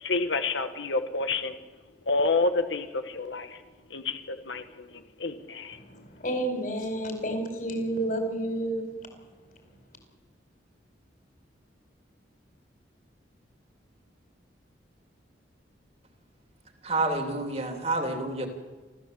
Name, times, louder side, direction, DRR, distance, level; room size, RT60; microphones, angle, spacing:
voice 1, 0.0-1.5 2.1-3.6 3.9-4.6 5.2-5.8, left 3 dB, 85° left, 1.4 m, -28 dB
voice 2, 5.7-9.1, right 1 dB, 45° left, 4.7 m, -31 dB
voice 3, 16.8-18.5, right 2 dB, 35° right, 2.7 m, -28 dB
28.0 x 14.0 x 7.7 m
head